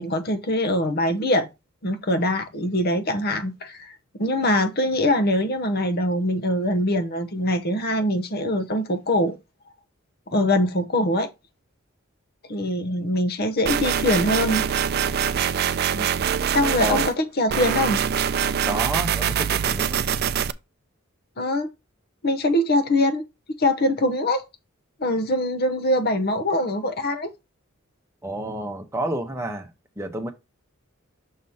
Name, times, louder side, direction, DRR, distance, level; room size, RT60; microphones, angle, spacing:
voice 1, 0.0-1.5 1.8-9.4 10.3-11.3 12.5-14.6 16.5-18.0 21.4-21.7 22.2-23.2 23.6-24.4 25.0-27.3, left 1 dB, 50° left, 0.9 m, -23 dB
sound 1, 13.7-17.1 17.5-20.5, right 8 dB, 50° right, 0.4 m, -24 dB
voice 2, 18.6-20.1 28.2-29.7 30.0-30.3, right 1 dB, 15° right, 1.0 m, -29 dB
6.5 x 3.0 x 5.5 m
head